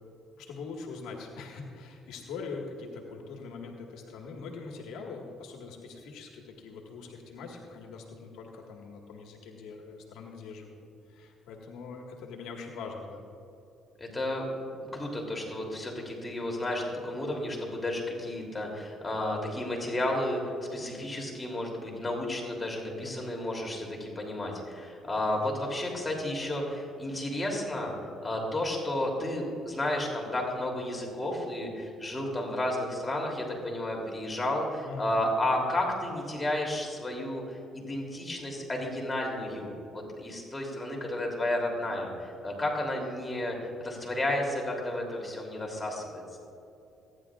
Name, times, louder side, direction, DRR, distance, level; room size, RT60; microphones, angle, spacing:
voice 1, 0.4-10.8 11.1-13.2 23.0-23.4 25.3-25.5 34.8-35.6, left 4 dB, 80° left, 0 dB, 1.6 m, -43 dB
voice 2, 14.0-27.9 28.2-46.2, left 1 dB, 20° left, -1 dB, 3.0 m, -32 dB
26.0 x 10.5 x 2.4 m, 2.8 s
supercardioid pair, 70°, 0 cm